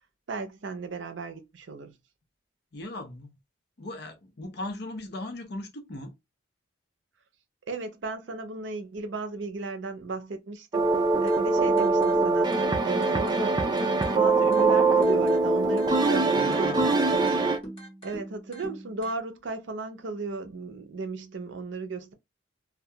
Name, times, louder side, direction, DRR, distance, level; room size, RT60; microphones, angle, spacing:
voice 1, 0.3-1.9 7.7-10.9 11.2-12.6 12.8-17.3 18.0-22.1, right 3 dB, 70° right, 0.5 m, -35 dB
voice 2, 2.7-3.4 3.8-6.1 16.3-16.9, left 2 dB, 55° left, 0.6 m, -38 dB
sound 1, 10.7-17.6, right 3 dB, 20° right, 0.4 m, -23 dB
sound 2, 11.1-19.1, right 1 dB, 30° left, 1.1 m, -42 dB
2.3 x 2.2 x 2.7 m
head